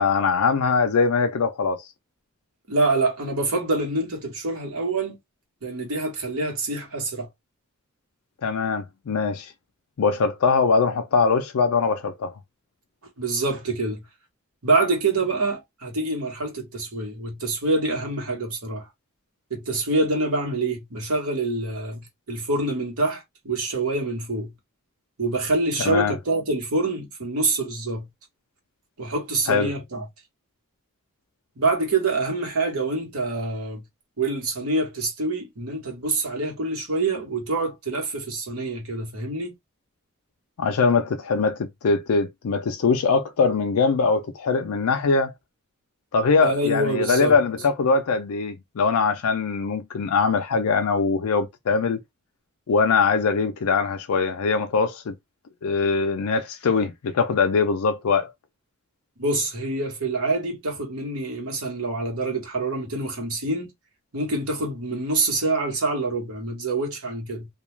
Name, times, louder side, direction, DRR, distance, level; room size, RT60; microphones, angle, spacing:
voice 1, 0.0-1.9 8.4-9.5 10.0-12.3 25.8-26.1 29.5-29.7 40.6-45.3 46.1-52.0 52.7-55.1 55.6-58.3, left 4 dB, 80° left, 0.4 m, -22 dB
voice 2, 2.7-5.2 5.6-7.3 13.2-14.0 14.6-18.9 19.5-24.5 25.2-28.1 29.0-30.1 31.6-33.8 34.2-39.5 46.4-47.3 59.2-63.7 64.1-67.5, right 2 dB, 80° right, 1.1 m, -26 dB
2.3 x 2.3 x 3.0 m
head